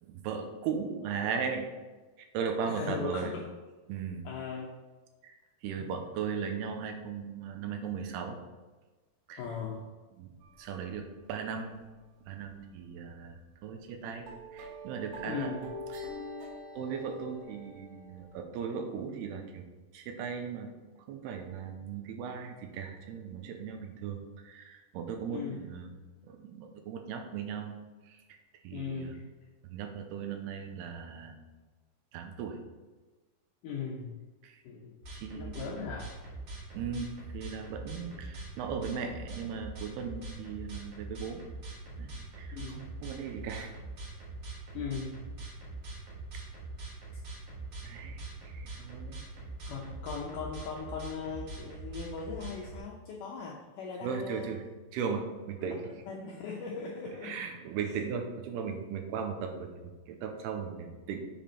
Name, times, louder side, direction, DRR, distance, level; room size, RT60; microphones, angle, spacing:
voice 1, 0.0-1.7 2.3-3.3 3.9-4.3 5.2-5.3 5.6-8.4 9.3-9.4 10.2-10.3 10.6-11.8 12.3-14.3 14.5-15.5 16.8-19.6 19.9-20.7 21.1-25.9 26.3-27.8 28.1-28.2 28.6-29.1 29.7-31.4 32.1-32.6 34.4-34.6 35.2-35.6 36.7-41.4 42.0-43.7 47.8-49.2 54.0-54.6 54.9-55.8 57.2-61.2, right 6 dB, 90° right, 4 dB, 2.7 m, -37 dB
voice 2, 2.7-3.5 4.2-4.7 5.8-5.9 9.4-9.9 15.2-15.7 25.3-25.7 28.7-29.2 33.6-34.1 34.6-34.9 35.4-36.2 38.0-38.2 42.5-43.0 44.7-45.2 49.1-49.2 49.7-54.6 55.6-57.4 57.9-58.0, left 5 dB, 85° left, -2 dB, 1.8 m, -39 dB
sound 1, 10.4-11.3 11.6-11.9 12.2-12.5 12.8-12.9 13.6-13.7 14.3-18.4, equal, 75° right, 3.3 m, -45 dB
sound 2, 35.0-52.8, right 3 dB, 50° right, 2.1 m, -43 dB
7.2 x 5.1 x 4.3 m, 1.3 s
omnidirectional pair, 4.7 m